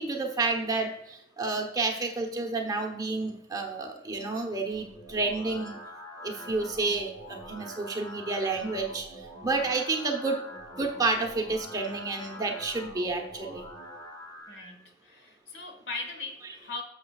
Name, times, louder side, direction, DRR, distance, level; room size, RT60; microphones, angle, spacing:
voice 1, 0.0-5.8 6.2-9.0 9.4-10.4 10.8-13.7 16.7-16.8, right 3 dB, 20° right, 3 dB, 1.0 m, -30 dB
sound 1, 4.7-14.7, equal, 20° left, 1.5 m, -45 dB
voice 2, 14.5-16.8, left 3 dB, 70° left, 5 dB, 1.5 m, -39 dB
11.0 x 7.3 x 2.4 m, 0.76 s
head